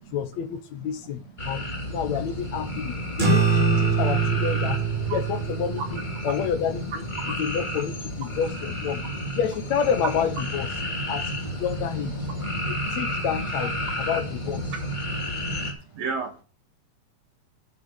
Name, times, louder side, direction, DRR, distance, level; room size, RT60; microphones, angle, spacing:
voice 1, 0.1-4.8 5.1-7.1 7.4-9.0 9.3-10.7 11.1-12.1 12.7-14.7, left 7 dB, 70° left, 2.3 m, -29 dB
sound 1, 1.4-15.7, equal, 15° left, 2.2 m, -31 dB
voice 2, 1.4-1.9 3.0-3.1 5.1-5.2 6.2-6.3 7.2-7.4 10.8-11.1 12.4-12.6 13.8-13.9 14.7-14.8 15.9-16.3, right 5 dB, 65° right, 2.8 m, -35 dB
sound 2, 3.2-8.0, right 5 dB, 20° right, 2.8 m, -25 dB
10.0 x 6.6 x 7.1 m
omnidirectional pair, 3.3 m